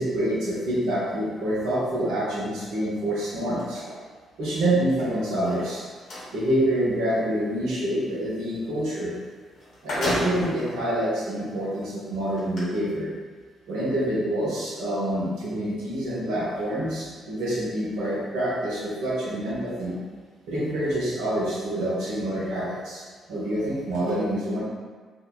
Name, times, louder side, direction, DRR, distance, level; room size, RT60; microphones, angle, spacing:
voice 1, 0.0-3.9 4.4-5.8 6.3-9.1 9.8-13.1 13.7-20.0 20.5-23.0 23.3-24.6, right 1 dB, 75° right, -8 dB, 0.8 m, -27 dB
sound 1, 5.3-6.3 9.1-9.2 9.5-10.6 11.3-11.4 12.4-12.6, left 1 dB, 60° left, 0.9 m, -30 dB
2.7 x 2.2 x 2.2 m, 1.5 s
hypercardioid pair, 40°, 0 cm